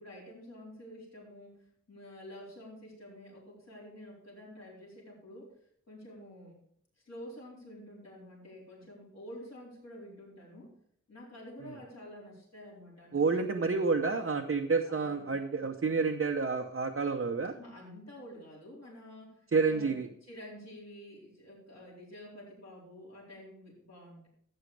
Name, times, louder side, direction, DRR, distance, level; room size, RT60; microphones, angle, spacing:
voice 1, 0.0-5.6 5.9-6.6 7.0-10.7 11.1-13.7 14.8-15.3 17.5-24.3, left 1 dB, 55° left, -4 dB, 4.3 m, -49 dB
voice 2, 13.1-17.6 19.5-20.1, right 4 dB, 45° right, 1 dB, 0.9 m, -29 dB
13.0 x 8.9 x 3.4 m, 0.66 s
wide cardioid pair, 85°, 31 cm